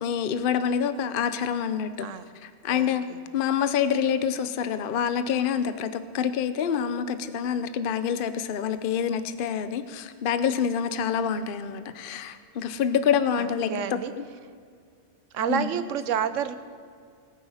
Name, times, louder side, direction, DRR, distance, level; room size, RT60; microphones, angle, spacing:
voice 1, 0.0-2.1 2.6-3.0 3.3-14.0 15.5-15.7, left 8 dB, 50° left, 11 dB, 0.8 m, -26 dB
voice 2, 2.7-3.2 13.4-14.1 15.3-16.6, right 8 dB, 75° right, 11 dB, 1.1 m, -29 dB
19.0 x 8.9 x 5.6 m, 2.2 s
omnidirectional pair, 1.3 m